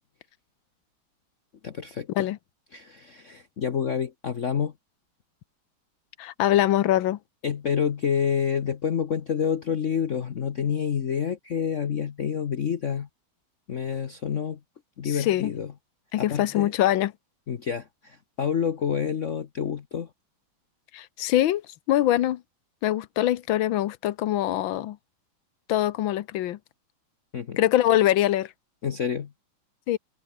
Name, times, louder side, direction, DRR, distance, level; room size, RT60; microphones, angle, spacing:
voice 1, 1.6-2.3 2.7-4.7 7.4-13.1 13.7-14.6 15.0-15.7 16.2-16.7 17.5-20.1 27.3-27.6 28.8-29.3, left 7 dB, 50° left, 1.0 m, -28 dB
voice 2, 6.2-7.2 15.0-15.5 16.1-17.1 20.9-21.6 21.9-22.4 22.8-25.0 25.7-26.6 27.6-28.5 29.9-30.0, left 13 dB, 75° left, 1.5 m, -23 dB
open air
omnidirectional pair, 2.3 m